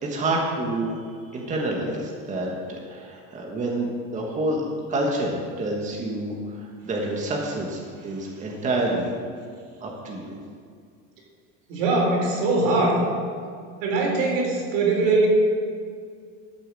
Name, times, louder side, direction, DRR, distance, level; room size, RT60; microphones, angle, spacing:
voice 1, 0.0-1.0 1.3-4.6 4.9-9.1 9.8-10.4, right 2 dB, 20° right, -1 dB, 1.5 m, -28 dB
voice 2, 11.7-13.1 13.8-15.3, right 3 dB, 85° right, -1 dB, 4.1 m, -21 dB
13.5 x 7.0 x 7.5 m, 2.1 s
cardioid pair, 170°, 37 cm